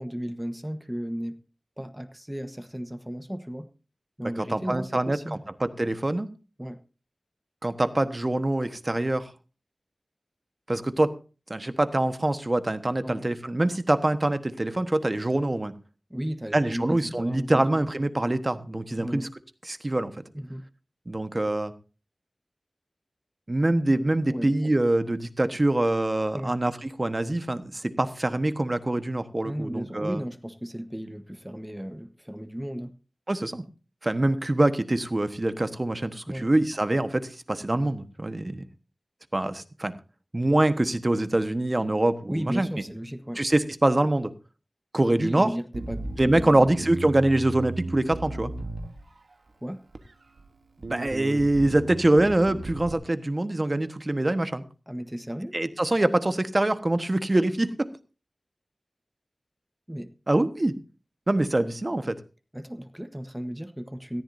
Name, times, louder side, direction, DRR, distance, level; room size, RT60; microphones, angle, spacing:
voice 1, 0.0-1.4 1.8-3.7 4.2-5.4 6.6-6.8 13.0-13.3 16.1-17.6 19.0-19.3 20.3-20.6 24.3-24.7 26.3-26.6 29.4-33.0 36.3-36.5 42.3-43.4 45.2-46.9 49.6-49.8 54.9-55.6 59.9-60.1 62.5-64.2, equal, 10° right, 9 dB, 1.2 m, -35 dB
voice 2, 4.5-6.3 7.6-9.3 10.7-11.1 11.5-15.7 16.5-19.3 19.7-20.1 21.1-21.7 23.5-30.2 33.3-33.6 34.0-38.6 39.3-39.9 40.3-42.7 43.4-44.3 44.9-45.5 46.2-48.5 50.8-54.6 55.5-57.9 60.3-60.8 61.3-62.1, right 1 dB, 40° right, 11 dB, 1.3 m, -24 dB
Bass guitar, 45.7-49.3 49.9-50.5 50.8-52.9, right 2 dB, 90° right, 1.2 m, -36 dB
18.0 x 14.0 x 2.7 m, 0.34 s
wide cardioid pair, 45°, 0 cm